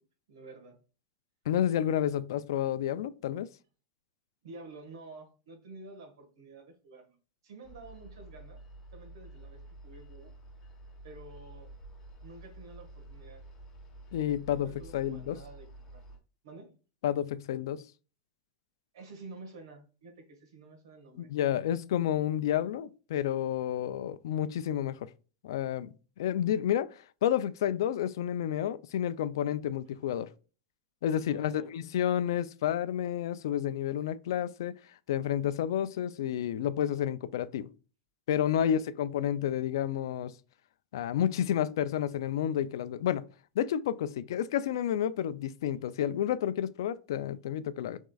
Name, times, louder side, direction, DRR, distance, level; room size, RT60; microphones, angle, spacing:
voice 1, 0.3-0.8 4.4-7.2 7.4-8.6 8.9-10.3 11.0-11.7 12.2-13.4 14.5-16.0 16.4-16.7 18.9-21.3 31.2-31.7 38.6-38.8, right 3 dB, 70° right, 1.6 m, -50 dB
voice 2, 1.5-3.5 14.1-15.4 17.0-17.8 21.2-25.1 25.4-30.3 31.0-34.7 35.1-37.7 38.3-40.3 40.9-43.2 43.6-48.0, left 10 dB, 65° left, 0.4 m, -30 dB
sound 1, 7.6-16.2, right 2 dB, 15° left, 1.0 m, -50 dB
6.2 x 3.6 x 2.3 m
supercardioid pair, 180°, 2 cm